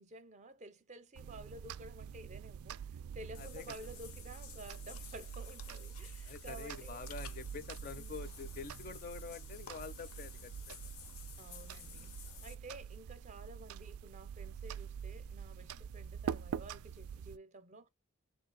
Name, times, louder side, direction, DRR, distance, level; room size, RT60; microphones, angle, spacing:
voice 1, 0.0-7.1 8.0-8.3 11.4-17.9, right 1 dB, 35° right, 0.5 m, -52 dB
sound 1, 1.2-17.4, right 8 dB, 90° right, 0.3 m, -46 dB
Water / Bathtub (filling or washing), 3.3-12.5, left 9 dB, 85° left, 0.7 m, -54 dB
voice 2, 3.4-3.8 6.2-10.9, left 5 dB, 40° left, 0.4 m, -47 dB
3.1 x 2.8 x 3.8 m
head